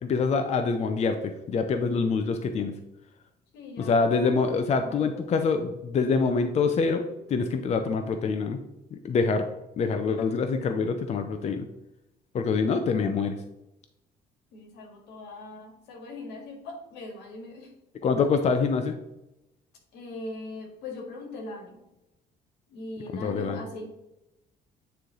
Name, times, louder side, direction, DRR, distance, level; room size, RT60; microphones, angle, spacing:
voice 1, 0.0-2.7 3.8-8.6 8.9-9.4 9.8-11.7 12.3-13.4 18.0-19.0 23.1-23.6, left 4 dB, 40° left, 7 dB, 0.6 m, -25 dB
voice 2, 3.5-4.5 4.8-5.4 14.5-17.7 19.9-21.8 22.7-23.9, left 2 dB, 85° left, 2 dB, 1.8 m, -40 dB
9.4 x 3.3 x 3.8 m, 0.90 s
cardioid pair, 110°, 17 cm